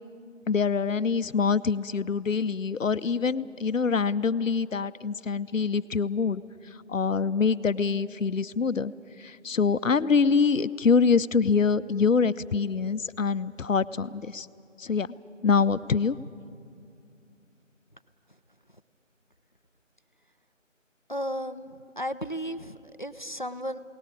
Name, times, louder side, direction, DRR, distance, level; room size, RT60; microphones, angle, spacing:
voice 1, 0.5-6.4 6.9-8.9 9.2-14.5 14.8-15.1 15.4-16.2, left 5 dB, 75° left, 14 dB, 0.7 m, -25 dB
voice 2, 21.1-23.8, equal, 40° left, 12 dB, 0.5 m, -34 dB
21.0 x 18.5 x 8.7 m, 2.4 s
figure-of-eight pair, 170°, 39 cm